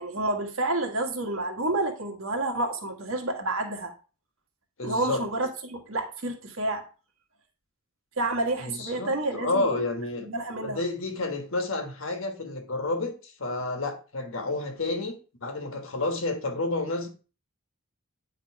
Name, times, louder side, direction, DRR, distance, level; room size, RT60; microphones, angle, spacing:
voice 1, 0.0-3.9 4.8-6.9 8.2-9.8 10.2-10.8, right 2 dB, 70° right, 1.6 m, -29 dB
voice 2, 4.8-5.2 8.6-10.3 10.6-15.1 15.4-17.1, left 2 dB, 65° left, 1.3 m, -30 dB
9.3 x 3.8 x 4.7 m
head